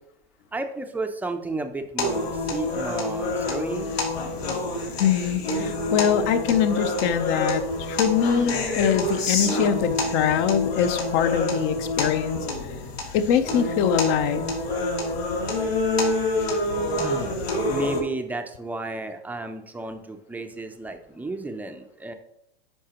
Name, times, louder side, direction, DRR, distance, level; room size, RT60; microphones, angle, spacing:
voice 1, 0.5-4.0 17.0-17.4 17.7-22.1, right 2 dB, 5° right, 6 dB, 0.6 m, -33 dB
sound 1, 2.0-18.0, left 2 dB, 85° left, 2.6 m, -27 dB
voice 2, 5.0-12.4 13.1-14.5, left 8 dB, 40° left, 11 dB, 0.7 m, -23 dB
10.0 x 5.9 x 2.9 m, 0.81 s
hypercardioid pair, 125°, 30 cm